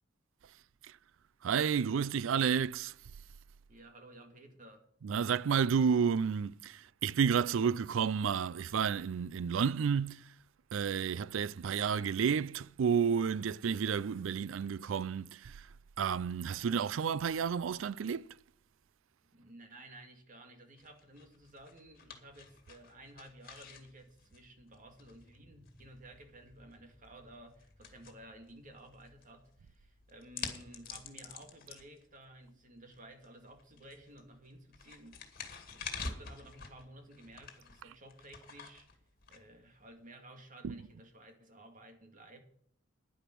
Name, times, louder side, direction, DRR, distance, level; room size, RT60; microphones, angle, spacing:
voice 1, 1.4-2.9 5.0-10.3 10.7-15.7 16.0-18.4 37.8-37.9 40.6-40.9, right 7 dB, 80° right, 0.4 m, -31 dB
voice 2, 3.7-4.9 19.3-35.4 35.7-38.9 39.3-42.4, right 1 dB, 45° right, 2.2 m, -54 dB
sound 1, 20.8-40.0, left 5 dB, 50° left, 2.1 m, -49 dB
10.5 x 10.0 x 6.0 m
head